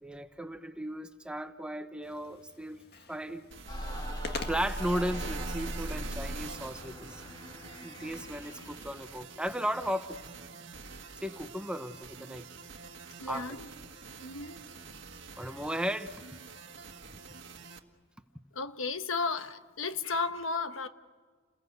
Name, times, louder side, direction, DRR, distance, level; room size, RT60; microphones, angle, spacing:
voice 1, 0.0-2.8 3.1-3.5 4.5-7.2 7.8-10.2 11.2-12.5 13.2-13.6 15.4-16.1, equal, 5° right, 8 dB, 0.9 m, -35 dB
sound 1, 2.0-9.0, left 4 dB, 55° left, 1.8 m, -48 dB
sound 2, 3.5-17.8, right 4 dB, 60° right, 1.7 m, -46 dB
sound 3, 3.7-9.1, equal, 20° left, 3.0 m, -39 dB
voice 2, 13.2-13.7 14.2-14.6 18.5-20.9, left 4 dB, 70° left, 9 dB, 1.2 m, -34 dB
29.5 x 21.0 x 8.2 m, 1.5 s
head